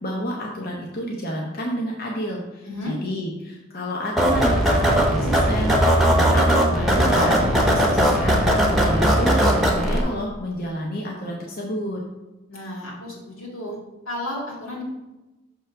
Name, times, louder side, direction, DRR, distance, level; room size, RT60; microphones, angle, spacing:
voice 1, 0.0-12.0, equal, 45° left, -1 dB, 0.8 m, -30 dB
voice 2, 2.6-2.9 12.5-13.8 14.1-14.8, left 1 dB, 85° left, -4 dB, 2.1 m, -33 dB
sound 1, 4.2-10.0, equal, ahead, 0.8 m, -18 dB
6.3 x 3.3 x 5.6 m, 1.1 s
head